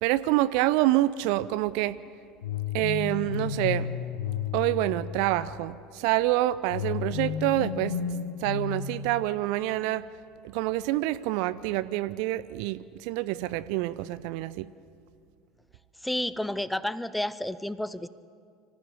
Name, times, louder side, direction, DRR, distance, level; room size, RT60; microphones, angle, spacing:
voice 1, 0.0-2.0 2.7-3.9 4.5-7.9 8.4-10.0 10.5-14.7, right 16 dB, 55° right, 16 dB, 0.5 m, -27 dB
sound 1, 2.4-5.5 6.7-9.6, left 7 dB, 70° left, 1.1 m, -33 dB
voice 2, 16.0-18.1, left 1 dB, 5° left, 16 dB, 0.6 m, -31 dB
24.5 x 15.0 x 7.1 m, 2.3 s
figure-of-eight pair, 70°, 0 cm